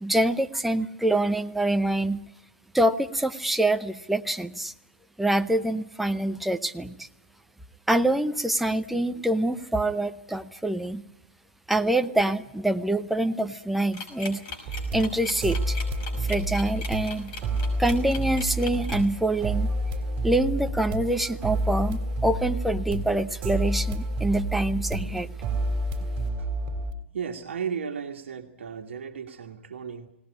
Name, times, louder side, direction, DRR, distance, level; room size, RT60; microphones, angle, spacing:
voice 1, 0.0-2.2 2.7-4.7 5.2-7.1 7.9-11.0 11.7-14.4 14.9-15.8 16.2-17.3 17.8-19.7 20.2-25.3, right 1 dB, ahead, 7 dB, 0.8 m, -25 dB
sound 1, 13.9-19.1, left 5 dB, 40° left, 5.7 m, -38 dB
sound 2, 14.7-26.9, right 1 dB, 30° right, 3.1 m, -29 dB
voice 2, 27.1-30.1, right 6 dB, 70° right, 4 dB, 1.7 m, -35 dB
20.0 x 18.5 x 10.0 m, 0.89 s
hypercardioid pair, 120°, 7 cm